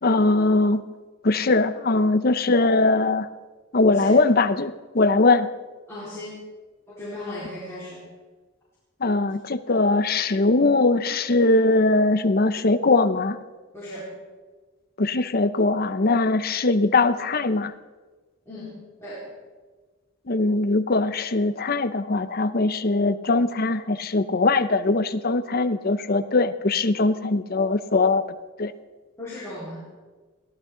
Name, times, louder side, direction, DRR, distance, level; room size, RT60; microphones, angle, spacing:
voice 1, 0.0-0.8 1.2-3.3 3.7-5.5 9.0-13.4 15.0-17.7 20.3-28.2 28.6-28.7, left 3 dB, 45° left, 11 dB, 0.7 m, -21 dB
voice 2, 5.9-6.4 6.9-8.0 13.7-14.1 18.5-18.7 19.0-19.2 29.2-29.8, left 1 dB, 15° left, -9 dB, 4.4 m, -36 dB
22.0 x 15.5 x 3.9 m, 1.3 s
head